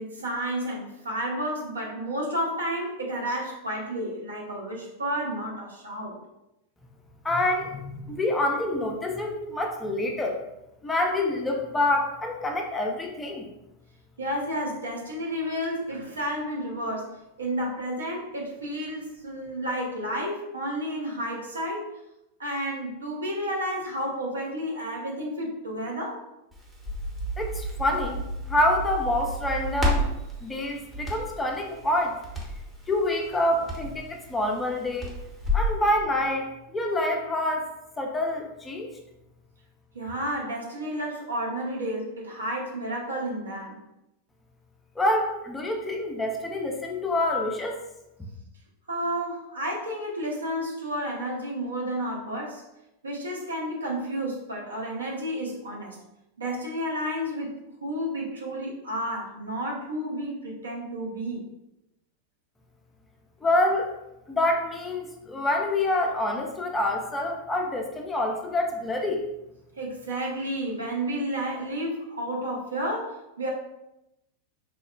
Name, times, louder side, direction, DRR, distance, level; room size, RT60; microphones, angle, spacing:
voice 1, 0.0-6.2 14.2-17.1 17.4-21.9 22.4-26.2 39.9-43.8 48.9-52.6 53.0-56.0 56.4-57.5 57.8-61.4 69.8-73.5, equal, 75° right, -2 dB, 0.6 m, -31 dB
voice 2, 7.2-10.4 10.8-13.5 27.4-28.2 28.5-30.1 30.4-32.2 32.9-35.2 35.5-37.7 38.0-38.9 45.0-47.8 63.4-63.9 64.3-69.2, left 1 dB, 15° left, 2 dB, 0.4 m, -27 dB
Crackle, 26.5-35.8, equal, 10° right, 0.8 m, -32 dB
3.1 x 2.0 x 2.3 m, 0.90 s
figure-of-eight pair, 90°, 0 cm